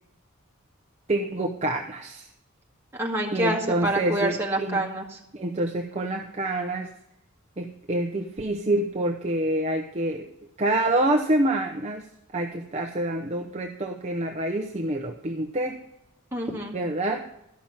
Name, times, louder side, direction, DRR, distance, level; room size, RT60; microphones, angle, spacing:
voice 1, 1.1-2.3 3.3-4.8 5.3-6.9 7.6-10.3 10.6-12.1 12.3-15.7 16.7-17.2, right 1 dB, 30° right, 2 dB, 0.7 m, -27 dB
voice 2, 2.9-5.2 16.3-16.8, right 1 dB, 10° right, -2 dB, 1.9 m, -27 dB
12.5 x 5.9 x 7.2 m, 0.82 s
head